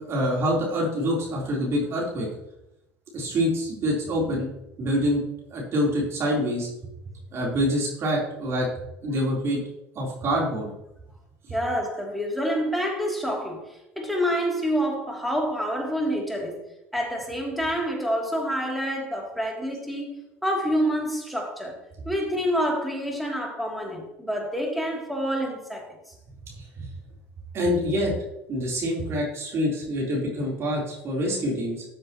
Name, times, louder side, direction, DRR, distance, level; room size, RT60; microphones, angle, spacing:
voice 1, 0.1-2.3 3.1-4.5 4.8-5.2 5.5-6.7 7.3-8.7 9.0-9.6 10.0-10.7 26.8-26.9 27.5-28.1 28.5-31.8, equal, 45° right, 3.6 m, -26 dB
voice 2, 11.5-16.6 16.9-21.8 22.0-26.0, equal, ahead, 2.8 m, -27 dB
13.5 x 7.5 x 3.0 m
supercardioid pair, 95°, 6 cm